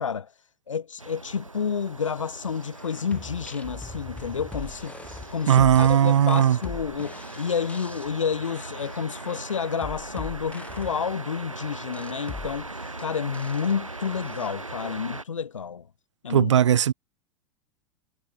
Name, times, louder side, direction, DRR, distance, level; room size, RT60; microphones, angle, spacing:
voice 1, 0.0-15.9 16.2-16.5, left 6 dB, 75° left, 0.9 m, -30 dB
sound 1, 1.0-15.2, right 2 dB, 85° right, 3.5 m, -40 dB
sound 2, 2.6-14.5, left 3 dB, 10° left, 2.3 m, -42 dB
voice 2, 5.5-6.6 16.3-16.9, right 9 dB, 65° right, 0.8 m, -18 dB
figure-of-eight pair, 90°, 16 cm